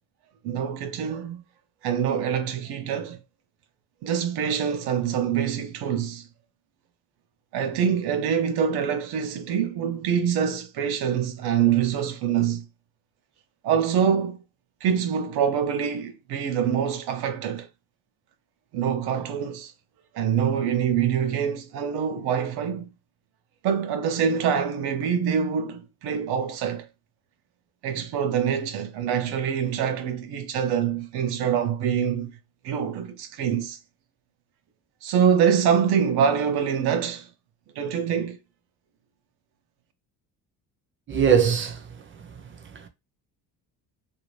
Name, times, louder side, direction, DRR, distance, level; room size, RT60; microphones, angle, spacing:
voice 1, 0.4-1.4 1.8-3.2 4.0-6.2 7.5-12.6 13.6-14.4 14.8-17.7 18.7-19.7 20.1-22.9 23.6-26.9 27.8-32.3 32.6-33.8 35.0-37.3 37.8-38.4, right 8 dB, 80° right, 0.8 m, -25 dB
voice 2, 41.1-41.9 42.2-42.3 42.7-42.9, right 7 dB, 30° right, 0.7 m, -21 dB
2.7 x 2.5 x 3.1 m
cardioid pair, 125°, 38 cm